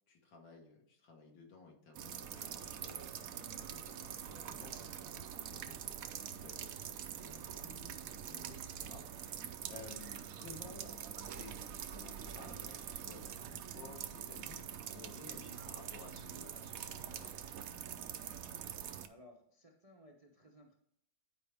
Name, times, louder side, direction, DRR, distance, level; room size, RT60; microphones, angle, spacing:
voice 1, 0.1-9.0 9.7-11.0 11.4-11.6 11.9-17.3, left 3 dB, 80° left, 1 dB, 2.3 m, -55 dB
sound 1, 1.9-19.1, right 9 dB, 65° right, 0.9 m, -45 dB
voice 2, 19.0-20.7, left 1 dB, 50° right, 0 dB, 0.4 m, -60 dB
10.5 x 4.9 x 3.4 m, 0.75 s
omnidirectional pair, 2.0 m